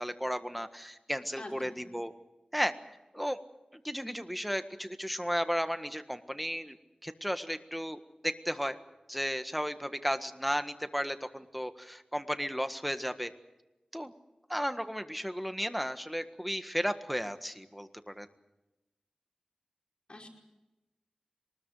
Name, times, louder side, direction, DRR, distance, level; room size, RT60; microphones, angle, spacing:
voice 1, 0.0-2.1 2.5-2.7 3.1-3.4 3.7-6.8 7.0-8.8 9.1-13.3 13.9-14.1 14.5-18.3, equal, ahead, 9 dB, 1.6 m, -34 dB
voice 2, 1.4-1.8 20.1-20.3, left 2 dB, 50° left, 1 dB, 4.9 m, -45 dB
23.5 x 20.5 x 7.8 m, 0.98 s
wide cardioid pair, 55°, 2 cm